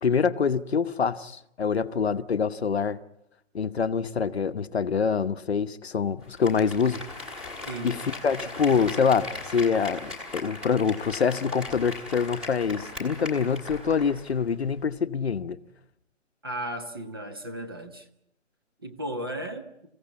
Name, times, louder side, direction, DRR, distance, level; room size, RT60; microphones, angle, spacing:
voice 1, 0.0-3.0 3.5-7.0 7.8-15.6, left 6 dB, 55° left, 1.0 m, -25 dB
Applause, 6.2-14.4 14.7-14.8, left 3 dB, ahead, 1.5 m, -39 dB
voice 2, 7.7-8.0 16.4-18.1 18.8-19.7, right 1 dB, 20° right, 0.9 m, -35 dB
28.5 x 16.5 x 8.5 m
hypercardioid pair, 175°, 38 cm